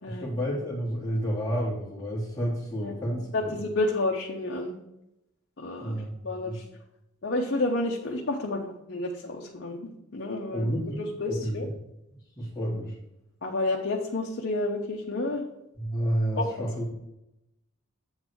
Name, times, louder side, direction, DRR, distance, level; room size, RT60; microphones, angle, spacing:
voice 1, 0.1-3.6 5.8-6.6 10.5-11.0 11.3-11.6 12.4-12.9 15.8-16.9, equal, 15° left, -8 dB, 1.4 m, -30 dB
voice 2, 3.3-4.8 5.6-6.0 6.2-6.6 7.2-11.7 13.4-15.4 16.4-16.7, left 2 dB, 55° left, 0 dB, 0.8 m, -30 dB
7.9 x 4.0 x 6.1 m, 0.88 s
head